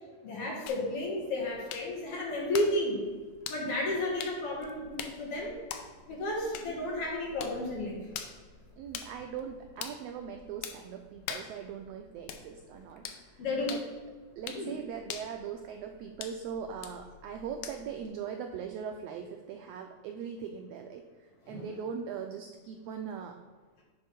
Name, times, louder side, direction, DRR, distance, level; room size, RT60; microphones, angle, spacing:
voice 1, 0.2-3.0 3.5-5.5 6.1-8.0 13.4-13.8 14.5-14.7 21.5-21.6, left 1 dB, 55° left, -2 dB, 2.3 m, -32 dB
sound 1, 0.7-18.1, left 8 dB, 80° left, 1.9 m, -46 dB
voice 2, 8.8-13.8 14.4-21.0 21.5-23.4, right 7 dB, 85° right, 4 dB, 1.4 m, -40 dB
9.1 x 3.5 x 5.9 m, 1.4 s
omnidirectional pair, 3.4 m